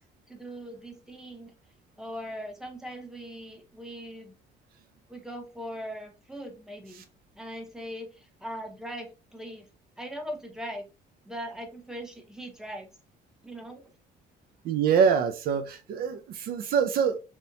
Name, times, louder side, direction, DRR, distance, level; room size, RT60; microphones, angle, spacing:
voice 1, 0.3-1.5 2.0-4.3 5.1-7.0 7.4-9.7 10.0-10.9 11.2-12.9 13.4-13.8, equal, 5° right, 0.6 m, -40 dB
voice 2, 14.6-17.2, right 7 dB, 60° right, 0.4 m, -25 dB
2.8 x 2.0 x 2.5 m
cardioid pair, 110°, 17 cm